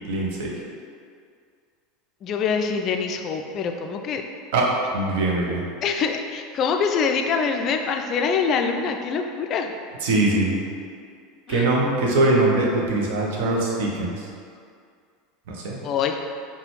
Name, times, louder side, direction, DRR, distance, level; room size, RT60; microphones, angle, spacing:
voice 1, 0.1-0.5 4.5-4.7 4.9-5.6 10.0-10.6 11.5-14.2 15.5-15.8, right 2 dB, 60° right, -2 dB, 0.7 m, -22 dB
voice 2, 2.2-4.2 5.8-9.7 11.5-11.7 15.8-16.2, left 5 dB, 40° left, 4 dB, 0.3 m, -24 dB
4.7 x 2.2 x 3.1 m, 2.2 s
figure-of-eight pair, 75°, 0 cm